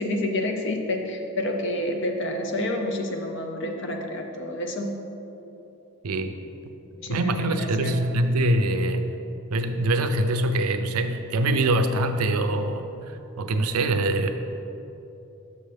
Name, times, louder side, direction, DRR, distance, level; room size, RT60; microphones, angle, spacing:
voice 1, 0.0-4.9 7.0-8.0, left 1 dB, 55° left, 3 dB, 0.7 m, -29 dB
voice 2, 7.1-9.1 9.5-12.9 13.4-14.3, right 1 dB, 90° right, 8 dB, 0.5 m, -24 dB
6.6 x 6.5 x 3.4 m, 3.0 s
head